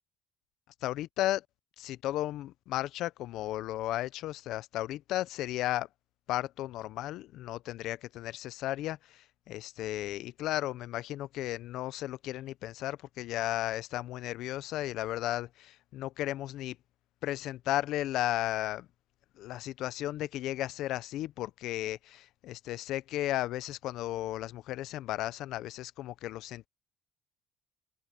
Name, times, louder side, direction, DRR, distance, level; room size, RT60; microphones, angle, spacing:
voice 1, 0.8-1.4 1.8-5.9 6.3-16.8 17.2-18.9 19.4-26.7, left 14 dB, 80° left, 0.6 m, -34 dB
open air
cardioid pair, 115°, 0 cm